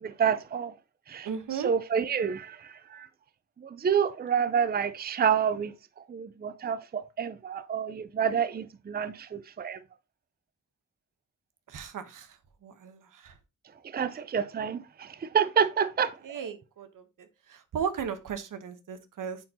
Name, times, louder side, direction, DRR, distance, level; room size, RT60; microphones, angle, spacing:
voice 1, 0.0-0.7 1.1-2.6 2.9-3.1 3.7-5.7 6.1-9.8 13.9-16.4, right 7 dB, 30° right, 0.5 m, -28 dB
voice 2, 1.2-1.7 11.7-12.3 12.6-13.3 16.2-16.9 17.7-19.4, right 7 dB, 85° right, 1.1 m, -35 dB
9.2 x 4.5 x 2.8 m
wide cardioid pair, 95°, 31 cm